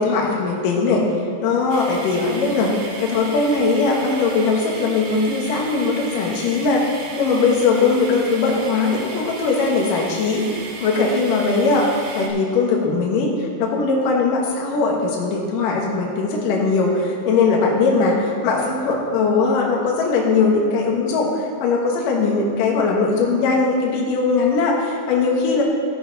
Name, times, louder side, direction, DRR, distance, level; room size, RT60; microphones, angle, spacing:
voice 1, 0.0-1.0 1.4-25.6, left 4 dB, 65° left, -2 dB, 2.4 m, -20 dB
sound 1, 1.7-12.3, right 3 dB, 70° right, 3.1 m, -36 dB
14.0 x 9.8 x 3.9 m, 2.2 s
omnidirectional pair, 5.0 m